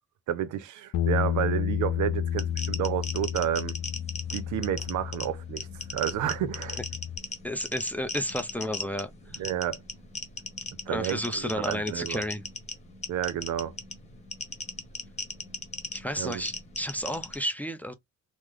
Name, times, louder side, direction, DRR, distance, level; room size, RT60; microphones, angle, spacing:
voice 1, 0.3-3.8 4.3-6.8 9.4-9.8 10.9-12.2 13.1-13.7 16.2-16.4, right 11 dB, 75° right, 0.6 m, -30 dB
Bass guitar, 0.9-7.2, left 10 dB, 65° left, 0.5 m, -31 dB
sound 1, 2.3-17.4, left 2 dB, 20° left, 1.1 m, -39 dB
voice 2, 7.4-9.4 10.9-12.4 15.9-17.9, equal, 5° left, 0.5 m, -32 dB
3.1 x 2.0 x 3.6 m
cardioid pair, 90°, 30 cm